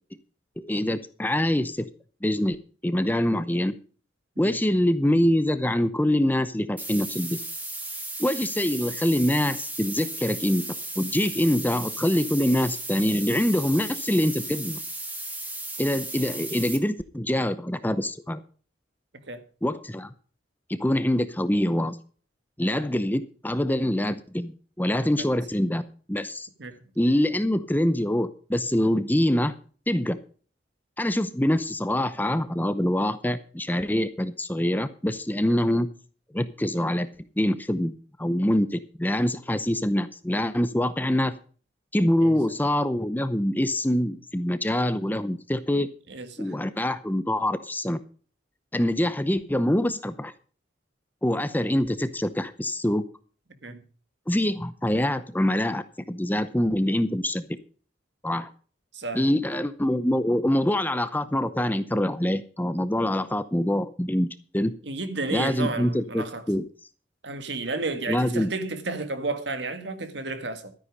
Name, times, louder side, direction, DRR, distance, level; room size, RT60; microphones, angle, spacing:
voice 1, 0.6-1.9 2.2-2.6 2.8-3.7 4.4-7.4 8.2-10.6 11.0-14.8 15.8-18.4 19.6-20.1 20.7-22.0 22.6-25.8 26.1-26.5 27.0-29.5 29.9-30.2 31.0-35.9 36.3-37.1 37.4-41.3 41.9-45.9 46.4-48.0 48.7-50.3 51.2-53.0 54.3-57.5 58.2-58.5 59.1-64.3 64.5-64.7 65.3-66.6 68.1-68.5, left 1 dB, 10° left, 0.7 m, -25 dB
sound 1, 6.8-16.8, right 2 dB, 10° right, 2.1 m, -35 dB
voice 2, 46.1-46.6 53.6-53.8 58.9-59.3 64.8-66.5 67.2-70.7, right 3 dB, 65° right, 1.7 m, -32 dB
13.0 x 9.7 x 5.2 m
head